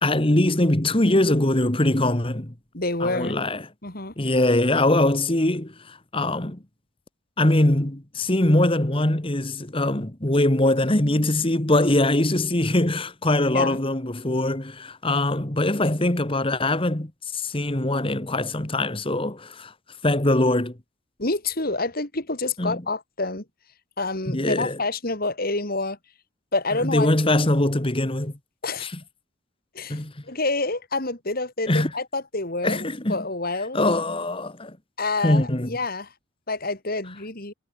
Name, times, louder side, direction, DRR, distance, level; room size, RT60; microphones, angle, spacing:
voice 1, 0.0-2.5 3.0-3.6 4.2-6.6 7.4-19.7 20.0-20.8 22.6-22.8 24.3-24.8 26.8-28.3 28.8-28.9 29.9-30.1 31.7-31.9 32.6-33.2 33.7-34.8 35.2-35.7, left 1 dB, 25° left, 1.8 m, -22 dB
voice 2, 2.7-3.4 3.8-4.1 13.5-13.8 21.2-23.4 24.0-26.0 26.5-27.1 28.6-28.9 29.7-30.0 30.3-33.8 35.0-36.1 36.5-37.5, left 3 dB, 45° left, 3.3 m, -27 dB
head